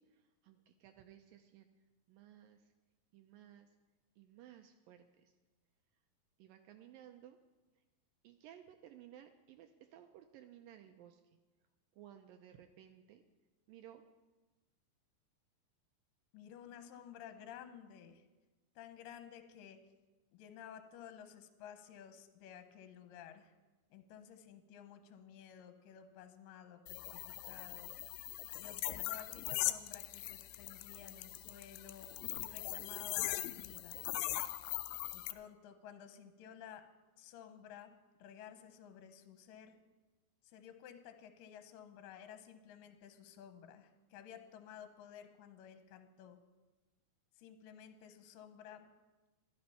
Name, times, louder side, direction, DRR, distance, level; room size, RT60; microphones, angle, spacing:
voice 1, 0.0-1.7 2.1-2.7 3.1-3.7 4.2-5.3 6.4-7.4 8.2-11.2 12.0-13.2 13.7-14.0, right 11 dB, 85° right, 6 dB, 2.1 m, -58 dB
voice 2, 16.3-18.2 18.8-19.8 20.3-23.5 23.9-27.2 27.5-27.9 28.5-32.1 32.4-34.1 35.1-36.8 37.2-37.9 38.2-39.8 40.4-46.4 47.4-48.9, left 9 dB, 70° left, 8 dB, 2.3 m, -54 dB
sound 1, 26.9-35.3, left 15 dB, 90° left, 2.0 m, -40 dB
13.5 x 12.5 x 5.7 m, 1.2 s
omnidirectional pair, 4.7 m